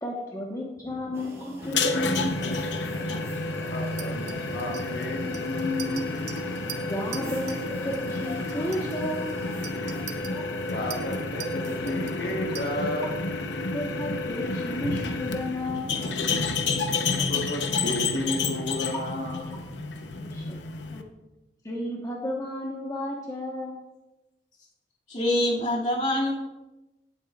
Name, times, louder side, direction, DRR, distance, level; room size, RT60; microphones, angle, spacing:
voice 1, 0.0-2.4 6.9-9.3 13.7-15.9 18.9-19.0 20.2-20.6 20.9-21.0 21.6-23.8, left 1 dB, 20° left, -2 dB, 1.1 m, -32 dB
voice 2, 0.8-1.1 3.7-6.1 7.2-7.3 10.6-13.1 17.3-19.6, left 1 dB, 60° left, -1 dB, 1.3 m, -32 dB
sound 1, 1.1-12.4, equal, 15° right, 2.6 m, -43 dB
sound 2, 1.6-21.0, left 3 dB, 80° left, 0.8 m, -30 dB
Chink clink, 4.0-7.7 7.9-8.2 8.5-13.0, right 10 dB, 70° right, 1.0 m, -43 dB
voice 3, 25.1-26.3, left 1 dB, 40° left, -4 dB, 2.3 m, -25 dB
17.5 x 8.1 x 2.4 m, 1.0 s
head